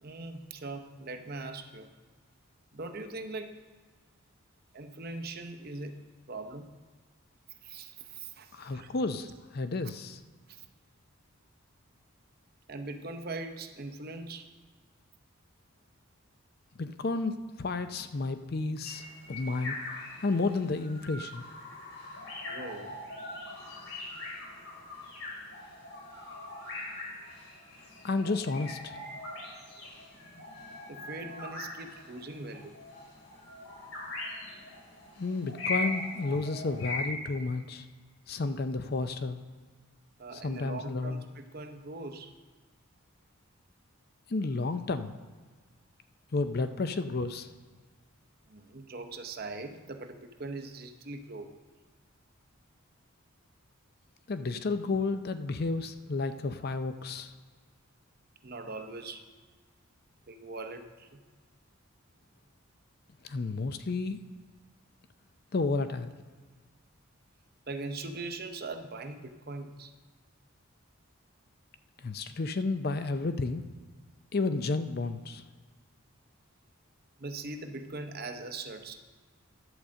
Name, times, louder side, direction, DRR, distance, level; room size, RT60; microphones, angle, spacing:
voice 1, 0.0-1.9 2.7-3.5 4.7-6.0 6.3-6.7 7.6-9.3 10.5-10.7 12.7-14.5 22.5-23.0 30.9-32.8 40.2-42.3 48.5-51.6 58.4-59.2 60.3-61.2 67.7-69.9 77.2-79.0, right 3 dB, 45° right, 6 dB, 0.7 m, -41 dB
voice 2, 8.5-10.2 16.8-19.8 20.2-21.5 28.0-28.9 35.2-37.8 38.3-39.4 40.3-41.2 44.3-45.1 46.3-47.5 54.3-57.3 63.2-64.2 65.5-66.1 72.0-73.6 74.3-75.4, left 3 dB, 45° left, 10 dB, 0.5 m, -31 dB
sound 1, 18.8-37.1, left 2 dB, 70° left, 3.1 m, -41 dB
11.0 x 5.0 x 7.3 m, 1.5 s
head